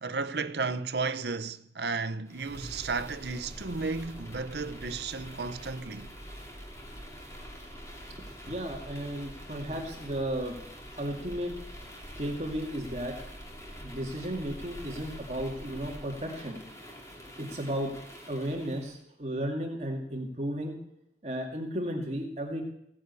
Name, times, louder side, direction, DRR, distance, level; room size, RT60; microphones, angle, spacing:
voice 1, 0.0-6.1, right 4 dB, 75° right, 0.7 m, -33 dB
sound 1, 2.3-19.0, equal, 15° left, 2.7 m, -45 dB
voice 2, 8.5-10.6 11.0-11.5 12.2-13.1 13.8-16.6 17.4-17.9 18.3-20.7 21.2-22.6, equal, 35° right, 2.3 m, -34 dB
16.5 x 10.0 x 8.3 m
head